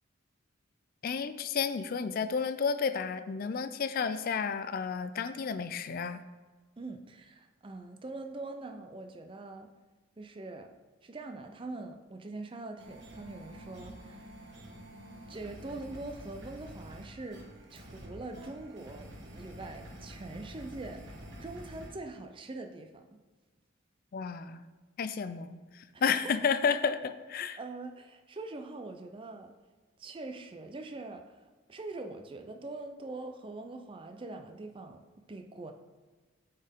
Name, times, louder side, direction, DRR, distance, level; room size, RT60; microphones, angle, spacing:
voice 1, 1.0-6.2 24.1-24.6 25.0-25.6 26.0-27.6, left 6 dB, 45° left, 12 dB, 0.3 m, -31 dB
voice 2, 6.8-9.7 10.2-10.7 11.0-14.3 15.3-17.4 17.7-23.0 25.9-26.3 27.4-29.5 30.0-31.4 31.7-35.0 35.3-35.7, right 2 dB, 25° right, 6 dB, 0.4 m, -43 dB
sound 1, 12.8-21.9, equal, 60° right, 1.2 m, -48 dB
8.5 x 4.4 x 3.6 m, 1.3 s
head